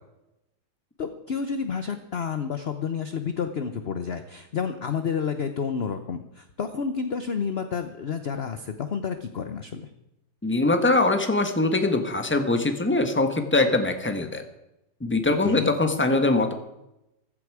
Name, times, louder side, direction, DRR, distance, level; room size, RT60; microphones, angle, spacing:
voice 1, 1.0-9.9 15.4-15.7, left 6 dB, 50° left, 9 dB, 0.7 m, -30 dB
voice 2, 10.4-14.4 15.0-16.5, left 2 dB, 5° left, 6 dB, 1.1 m, -22 dB
15.0 x 14.5 x 4.9 m, 0.90 s
omnidirectional pair, 2.1 m